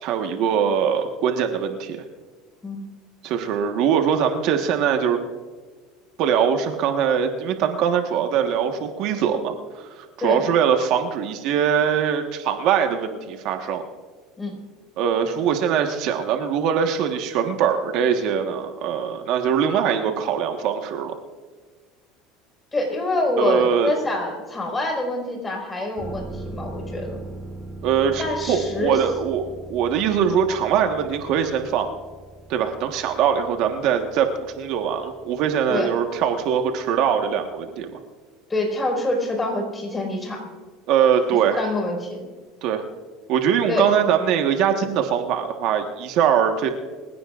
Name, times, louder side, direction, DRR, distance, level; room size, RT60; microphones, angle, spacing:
voice 1, 0.0-2.0 3.2-5.2 6.2-13.8 15.0-21.1 23.4-23.9 27.8-31.9 32.5-38.0 40.9-41.6 42.6-42.8 43.3-46.7, right 8 dB, 60° right, 5 dB, 1.4 m, -22 dB
voice 2, 22.7-27.2 28.2-29.0 35.7-35.9 38.5-40.5 41.6-42.2 43.7-43.9, left 2 dB, 15° left, 0 dB, 5.0 m, -26 dB
sound 1, 26.0-37.5 37.8-37.9, right 2 dB, 20° right, 2.2 m, -40 dB
25.5 x 16.0 x 2.5 m, 1.4 s
supercardioid pair, 125°, 0 cm